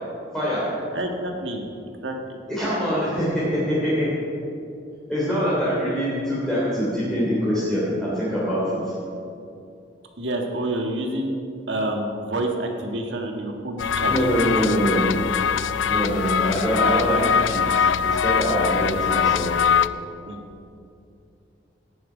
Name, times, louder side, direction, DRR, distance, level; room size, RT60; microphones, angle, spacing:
voice 1, 0.3-0.7 2.5-4.1 5.1-8.9 14.0-15.1 15.8-19.6, equal, 5° left, -10 dB, 3.1 m, -24 dB
voice 2, 0.9-1.7 2.0-2.1 10.2-11.4 11.7-14.7 18.8-18.9 20.2-20.6, right 1 dB, 75° right, 2 dB, 1.7 m, -28 dB
sound 1, 13.8-19.9, left 7 dB, 80° left, 0.4 m, -22 dB
17.5 x 9.2 x 5.1 m, 2.5 s
head